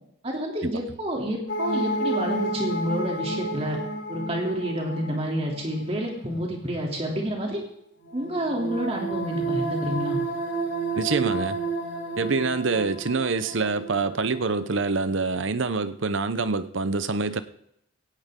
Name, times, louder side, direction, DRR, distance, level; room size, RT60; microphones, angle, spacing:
voice 1, 0.2-3.8 4.1-7.6 8.1-10.2, equal, 30° right, -1 dB, 3.0 m, -29 dB
sound 1, 1.5-5.8 8.0-14.3 14.8-14.9, right 2 dB, 75° left, 6.8 m, -30 dB
voice 2, 11.0-11.6 12.2-17.4, right 4 dB, 70° right, 13 dB, 0.8 m, -26 dB
17.0 x 15.5 x 3.8 m, 0.77 s
head